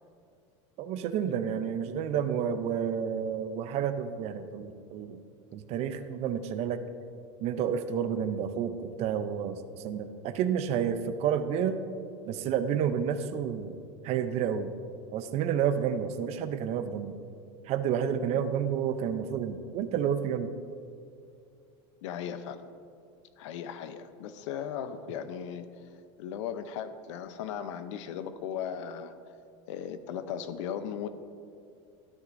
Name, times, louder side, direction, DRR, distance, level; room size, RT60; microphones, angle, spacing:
voice 1, 0.8-5.2 5.5-6.8 7.4-11.8 12.3-13.8 14.0-14.7 15.1-17.1 17.7-20.5, right 8 dB, 45° right, 10 dB, 0.6 m, -30 dB
voice 2, 1.3-1.6 18.3-18.7 22.0-22.6 23.4-25.9 26.2-29.1 29.7-31.1, left 8 dB, 75° left, 11 dB, 0.7 m, -37 dB
13.0 x 9.3 x 2.6 m, 2.5 s
supercardioid pair, 135°, 16 cm